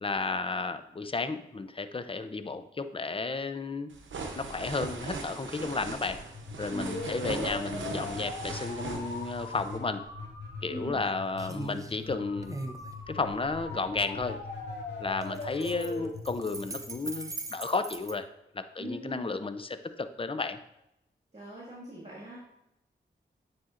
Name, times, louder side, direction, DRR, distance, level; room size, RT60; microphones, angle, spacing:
voice 1, 0.0-3.9 4.4-6.2 6.6-10.0 10.6-12.6 13.1-14.4 15.0-18.3 18.5-19.7 20.0-20.6, left 3 dB, 30° left, 10 dB, 0.6 m, -33 dB
sound 1, 3.9-9.8, right 4 dB, 80° right, 0.8 m, -39 dB
sound 2, 5.8-17.7, left 3 dB, 70° left, 1.6 m, -40 dB
voice 2, 6.7-7.1 10.7-11.0 18.8-19.5 21.3-22.4, right 1 dB, 35° right, -5 dB, 1.9 m, -41 dB
sound 3, 10.0-10.2 10.6-11.1 11.4-11.9 12.4-14.3 15.1-18.1, right 2 dB, 15° right, 0.7 m, -41 dB
9.2 x 4.2 x 2.5 m, 0.83 s
cardioid pair, 40°, 20 cm